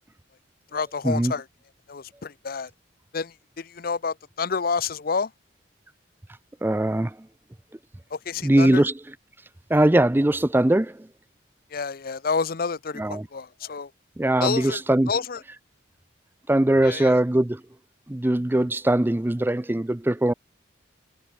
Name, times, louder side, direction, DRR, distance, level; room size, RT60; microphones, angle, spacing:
voice 1, 0.7-1.4 1.9-2.7 3.1-5.3 8.1-8.8 11.7-13.9 14.4-14.8 15.1-15.4 16.8-17.2, left 5 dB, 45° left, 0.6 m, -29 dB
voice 2, 6.6-7.2 8.4-8.9 9.7-11.0 13.0-13.3 14.2-15.1 16.5-17.6 18.1-20.3, right 1 dB, 10° right, 0.4 m, -21 dB
head